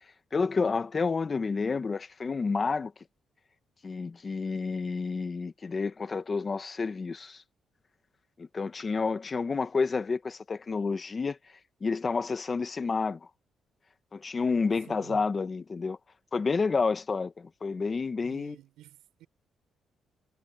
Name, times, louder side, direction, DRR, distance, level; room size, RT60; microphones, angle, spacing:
voice 1, 0.3-2.9 3.8-7.4 8.4-11.4 11.8-13.3 14.1-16.0 16.3-18.6, left 4 dB, 35° left, 1.4 m, -30 dB
voice 2, 14.8-15.3 18.2-19.3, right 14 dB, 90° right, 6.3 m, -51 dB
cardioid pair, 90°, 0 cm